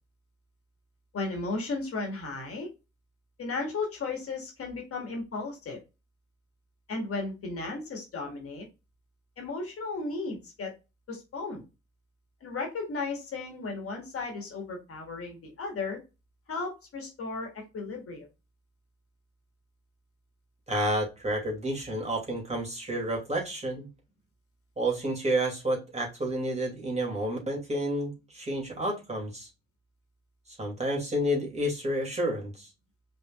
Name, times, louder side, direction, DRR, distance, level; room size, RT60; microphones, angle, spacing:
voice 1, 1.1-2.7 3.4-5.8 6.9-8.7 9.4-10.7 11.1-11.6 12.4-16.0 16.5-18.3, left 3 dB, 45° left, 1 dB, 2.0 m, -35 dB
voice 2, 20.7-23.9 24.8-29.5 30.6-32.7, right 1 dB, 20° right, -2 dB, 2.7 m, -30 dB
5.1 x 4.0 x 2.5 m, 0.27 s
hypercardioid pair, 50°, 32 cm